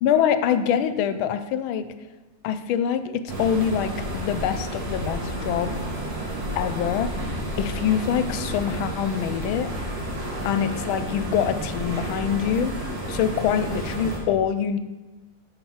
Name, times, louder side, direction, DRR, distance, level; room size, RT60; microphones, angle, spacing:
voice 1, 0.0-1.9 2.4-5.7 6.6-7.1 7.6-9.7 10.4-12.7 13.1-14.8, left 8 dB, 90° left, 11 dB, 1.4 m, -24 dB
sound 1, 3.3-14.2, right 1 dB, 50° right, 2.0 m, -31 dB
8.9 x 4.8 x 5.7 m, 1.1 s
omnidirectional pair, 2.2 m